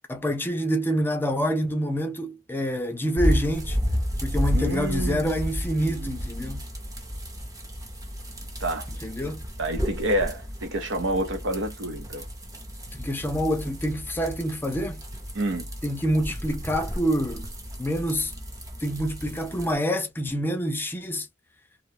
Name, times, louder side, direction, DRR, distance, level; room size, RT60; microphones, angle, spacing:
voice 1, 0.1-3.8 4.2-6.7 9.0-9.4 12.9-15.0 15.8-17.5 17.8-18.3 18.8-21.3, equal, 10° left, 0.5 m, -27 dB
sound 1, 3.2-19.7, equal, 20° right, 0.7 m, -32 dB
voice 2, 4.5-6.5 8.6-8.9 9.6-12.3 15.3-15.7, right 1 dB, 75° right, 0.8 m, -29 dB
2.4 x 2.3 x 3.2 m
head